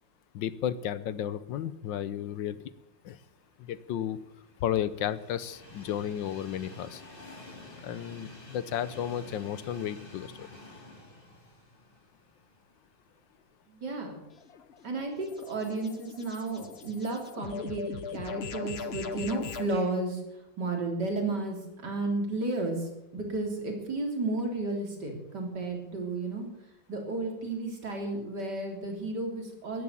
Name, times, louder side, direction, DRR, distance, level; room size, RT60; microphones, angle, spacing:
voice 1, 0.3-2.6 3.0-3.2 3.6-4.2 4.6-7.0 7.8-10.5, left 10 dB, 70° left, 16 dB, 1.4 m, -33 dB
Train, 3.3-13.4 13.9-14.0 15.1-15.2, left 2 dB, 25° left, 2.8 m, -50 dB
voice 2, 13.7-14.2 14.8-20.2 20.6-21.6 21.8-26.5 26.9-29.8, right 2 dB, 55° right, 2 dB, 4.0 m, -33 dB
sound 1, 14.3-19.7, left 6 dB, 45° left, 0.9 m, -40 dB
13.5 x 11.0 x 8.4 m, 0.88 s
omnidirectional pair, 2.2 m